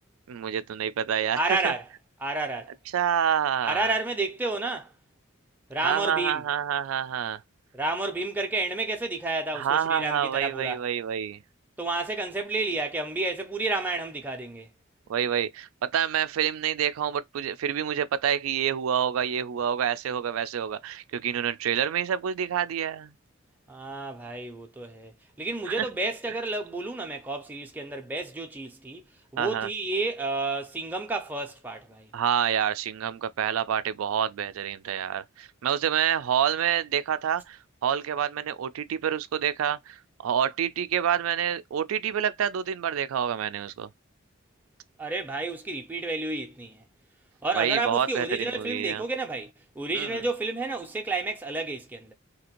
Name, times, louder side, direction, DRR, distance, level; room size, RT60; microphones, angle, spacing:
voice 1, 0.3-1.7 2.9-3.9 5.8-7.4 9.5-11.4 15.1-23.1 25.7-25.9 29.4-29.7 32.1-43.9 47.6-49.0 49.9-50.3, right 9 dB, 85° right, 0.4 m, -27 dB
voice 2, 1.3-1.9 2.2-2.8 3.6-4.9 5.7-6.4 7.7-10.8 11.8-14.7 23.7-25.1 25.4-29.0 29.3-32.1 45.0-46.8 47.4-49.5 49.8-52.1, right 3 dB, 10° right, 0.5 m, -30 dB
2.8 x 2.5 x 2.9 m
head